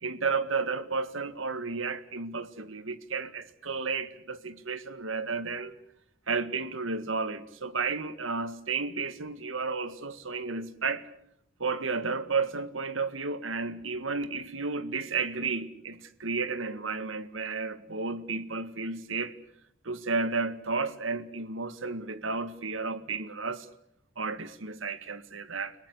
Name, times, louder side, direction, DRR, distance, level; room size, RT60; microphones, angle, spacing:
voice 1, 0.0-5.7 6.3-11.0 11.6-19.3 19.8-23.7 24.2-25.8, right 4 dB, 80° right, 13 dB, 1.8 m, -32 dB
30.0 x 18.5 x 8.4 m, 0.73 s
head